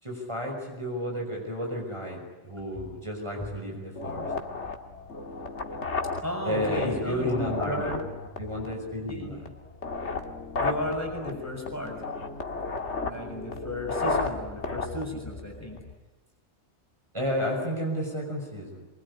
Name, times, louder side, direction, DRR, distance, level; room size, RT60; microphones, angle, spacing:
voice 1, 0.0-4.3 6.4-7.9 8.4-9.5 17.1-18.8, equal, 25° right, -1 dB, 5.9 m, -32 dB
sound 1, 4.0-15.9, left 3 dB, 70° left, 2.2 m, -34 dB
voice 2, 6.2-8.1 9.1-9.3 10.6-12.0 12.9-15.8, left 1 dB, 15° left, 1 dB, 6.6 m, -34 dB
24.5 x 24.0 x 9.8 m, 1.1 s
omnidirectional pair, 1.2 m